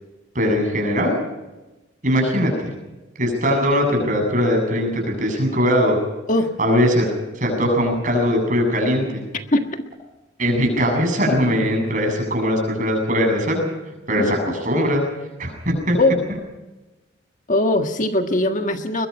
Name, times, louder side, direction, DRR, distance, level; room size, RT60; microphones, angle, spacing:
voice 1, 0.3-1.1 2.0-2.7 3.2-6.0 6.6-7.1 7.4-9.2 10.4-13.7 14.1-15.0 15.4-16.0, equal, 40° right, 3 dB, 7.9 m, -20 dB
voice 2, 9.5-9.8 14.2-14.3 16.0-16.2 17.5-19.1, left 1 dB, 40° left, 5 dB, 1.6 m, -20 dB
22.5 x 22.0 x 5.5 m, 1.1 s
head